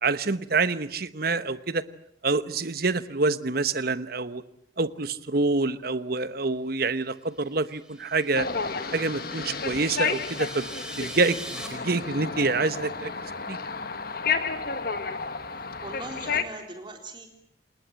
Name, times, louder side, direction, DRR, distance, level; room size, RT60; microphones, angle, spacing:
voice 1, 0.0-1.8 2.2-4.4 4.8-8.5 8.9-10.7 11.0-13.1 13.5-13.6, right 3 dB, 50° right, 13 dB, 1.1 m, -26 dB
sound 1, 7.5-11.7, right 1 dB, 5° right, 4.5 m, -42 dB
sound 2, 8.3-16.4, left 5 dB, 50° left, 1.6 m, -31 dB
voice 2, 15.8-17.3, right 2 dB, 25° right, 4 dB, 3.8 m, -39 dB
28.0 x 20.0 x 8.9 m, 0.73 s
head